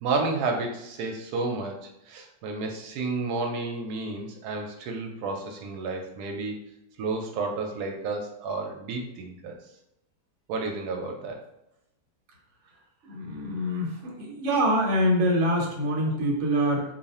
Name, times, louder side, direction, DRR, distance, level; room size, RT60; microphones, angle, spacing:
voice 1, 0.0-6.5 7.0-9.5 10.5-11.4, right 3 dB, 85° right, 2 dB, 1.1 m, -31 dB
voice 2, 13.0-16.8, equal, 55° right, -1 dB, 1.1 m, -25 dB
2.8 x 2.4 x 4.1 m, 0.86 s
omnidirectional pair, 1.6 m